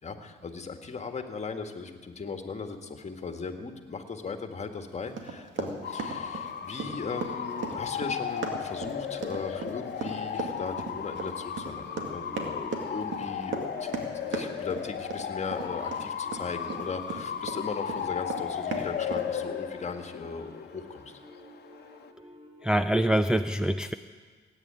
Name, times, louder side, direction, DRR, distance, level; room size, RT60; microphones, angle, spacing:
voice 1, 0.0-21.1, left 4 dB, 35° left, 5 dB, 1.8 m, -38 dB
Run, 5.2-17.6 17.9-19.3, right 5 dB, 70° right, 2.3 m, -36 dB
Bark / Motor vehicle (road) / Siren, 5.8-22.1, left 8 dB, 55° left, 1.1 m, -36 dB
sound 1, 7.0-23.0, equal, 30° right, 2.8 m, -52 dB
voice 2, 22.6-23.9, right 1 dB, 5° right, 7 dB, 0.5 m, -25 dB
17.5 x 9.5 x 8.8 m, 1.5 s
cardioid pair, 90°, 20 cm